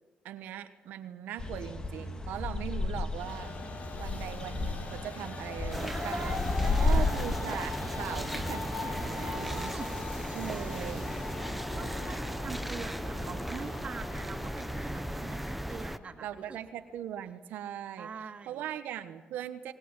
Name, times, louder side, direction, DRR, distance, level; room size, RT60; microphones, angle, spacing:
voice 1, 0.2-3.5 4.0-6.4 6.8-9.7 10.3-11.1 16.2-19.7, right 11 dB, 85° right, 9 dB, 1.2 m, -40 dB
sound 1, 1.4-9.6, left 3 dB, 25° left, 2.2 m, -33 dB
Train, 3.1-16.6, left 4 dB, 55° left, 4.4 m, -41 dB
sound 2, 5.7-16.0, equal, 5° right, 0.9 m, -37 dB
voice 2, 5.8-7.1 9.2-9.9 10.3-11.0 11.4-16.6 18.0-18.7, right 5 dB, 45° right, 5 dB, 2.8 m, -44 dB
21.0 x 20.5 x 8.9 m, 1.3 s
cardioid pair, 95°, 3 cm